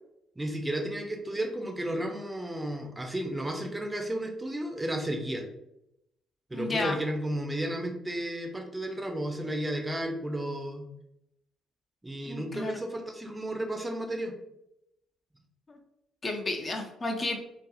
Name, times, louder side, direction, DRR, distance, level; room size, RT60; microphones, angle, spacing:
voice 1, 0.4-5.4 6.5-10.9 12.0-14.3, right 1 dB, 15° right, 2 dB, 0.5 m, -33 dB
voice 2, 6.5-7.0 12.3-12.7 15.7-15.8 16.2-17.4, left 2 dB, 35° left, 2 dB, 0.5 m, -32 dB
2.6 x 2.5 x 2.3 m, 0.82 s
hypercardioid pair, 45°, 0 cm